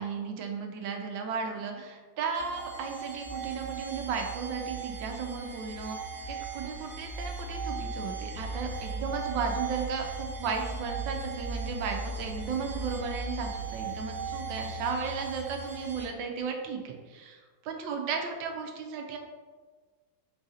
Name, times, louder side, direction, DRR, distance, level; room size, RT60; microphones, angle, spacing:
voice 1, 0.0-6.0 6.3-19.2, right 5 dB, 80° right, 3 dB, 1.3 m, -35 dB
sound 1, 2.3-16.0, right 4 dB, 45° right, 1.0 m, -37 dB
4.7 x 2.5 x 4.0 m, 1.4 s
omnidirectional pair, 2.1 m